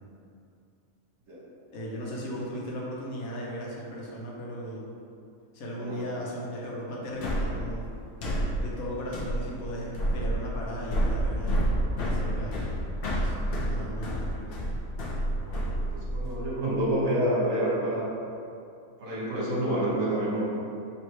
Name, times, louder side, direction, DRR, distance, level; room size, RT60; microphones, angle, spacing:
voice 1, 1.7-4.9 5.5-7.8 8.6-11.7 12.0-12.6 13.0-14.7, equal, 85° left, -4 dB, 1.3 m, -37 dB
sound 1, 7.2-16.3, right 1 dB, 55° left, 0.7 m, -29 dB
voice 2, 15.4-18.2 19.0-20.4, right 1 dB, 55° right, -6 dB, 1.1 m, -28 dB
3.2 x 3.1 x 4.5 m, 2.5 s
omnidirectional pair, 1.5 m